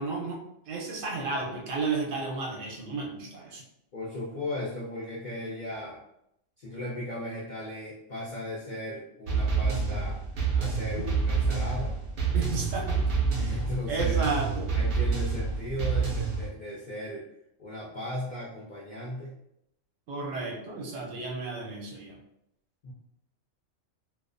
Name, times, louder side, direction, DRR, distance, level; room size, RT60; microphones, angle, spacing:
voice 1, 0.0-3.6 11.0-11.1 12.3-13.6 13.9-14.7 20.1-22.2, right 3 dB, 75° right, 0 dB, 1.0 m, -33 dB
voice 2, 3.9-6.0 6.6-10.2 10.5-11.9 13.5-14.2 14.7-17.3 17.6-19.4 22.8-22.9, left 1 dB, 65° left, -7 dB, 0.4 m, -37 dB
sound 1, 9.3-16.5, right 5 dB, 55° right, 0.6 m, -28 dB
2.3 x 2.3 x 2.4 m, 0.78 s
omnidirectional pair, 1.3 m